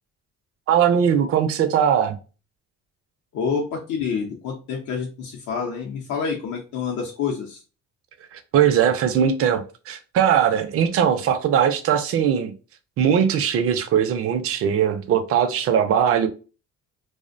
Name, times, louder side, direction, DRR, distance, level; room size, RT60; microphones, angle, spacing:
voice 1, 0.7-2.2 8.3-12.5 13.0-16.3, right 8 dB, 50° right, 0.4 m, -20 dB
voice 2, 3.3-7.6, left 6 dB, 70° left, 0.6 m, -28 dB
2.4 x 2.1 x 2.4 m
cardioid pair, 90°, 30 cm